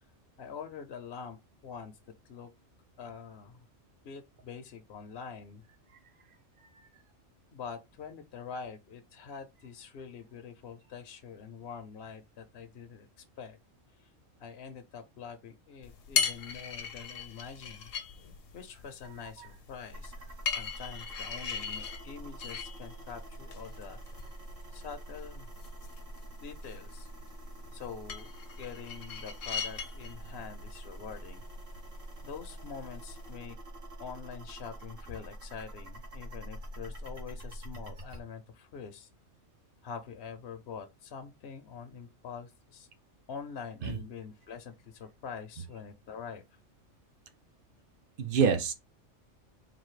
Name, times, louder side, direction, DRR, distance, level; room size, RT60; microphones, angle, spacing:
voice 1, 0.4-1.4 1.6-1.9 2.3-2.5 3.0-3.6 4.0-5.6 7.5-13.1 13.4-13.6 14.4-17.9 18.5-20.1 20.6-24.0 24.7-25.5 26.4-27.1 27.7-28.3 28.6-31.4 32.2-33.6 34.0-39.1 39.8-42.9 43.3-46.4, left 6 dB, 60° left, 0.8 m, -45 dB
sound 1, 15.8-33.3, left 7 dB, 75° left, 1.1 m, -40 dB
sound 2, 19.9-38.2, right 1 dB, 70° right, 1.9 m, -46 dB
voice 2, 48.2-48.7, right 6 dB, 50° right, 0.8 m, -27 dB
4.0 x 2.6 x 4.7 m
omnidirectional pair, 1.3 m